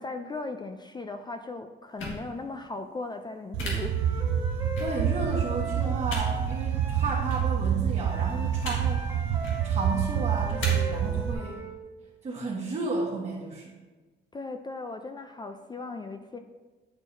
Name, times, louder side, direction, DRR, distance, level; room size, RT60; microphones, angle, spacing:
voice 1, 0.0-4.0 14.3-16.4, left 3 dB, 20° left, 7 dB, 0.3 m, -37 dB
sound 1, 2.0-2.2 3.6-3.7 4.8-4.9 6.1-6.2 7.3-7.4 8.6-8.8 9.3-9.6 10.6-10.7, left 2 dB, 85° left, 1.6 m, -35 dB
sound 2, 3.5-11.3, right 9 dB, 90° right, 0.5 m, -28 dB
Wind instrument woodwind instrument, 3.7-7.3 8.0-11.8, right 1 dB, 15° right, 1.3 m, -39 dB
voice 2, 4.8-9.3 9.6-11.7 12.2-13.8, right 3 dB, 40° right, -7 dB, 1.2 m, -33 dB
9.5 x 4.5 x 2.6 m, 1.3 s
cardioid pair, 90°, 20 cm